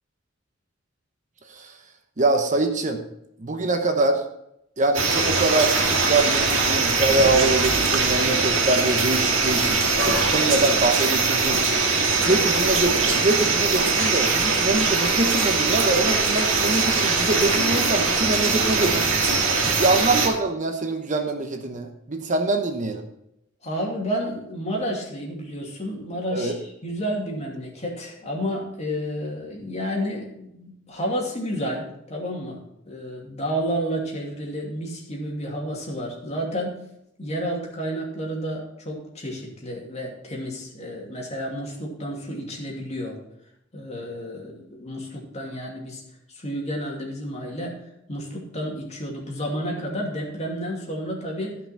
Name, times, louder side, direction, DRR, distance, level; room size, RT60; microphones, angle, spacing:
voice 1, 2.2-3.0 3.4-4.2 4.8-11.6 12.3-19.1 19.8-23.0 26.3-26.6, right 2 dB, 40° right, 6 dB, 0.9 m, -24 dB
sound 1, 4.9-20.3, right 4 dB, 85° right, 2.0 m, -21 dB
voice 2, 23.6-36.8 37.2-43.2 43.7-46.0 46.3-47.8 48.1-51.6, equal, 35° left, -1 dB, 2.6 m, -31 dB
13.0 x 5.6 x 5.9 m, 0.80 s
head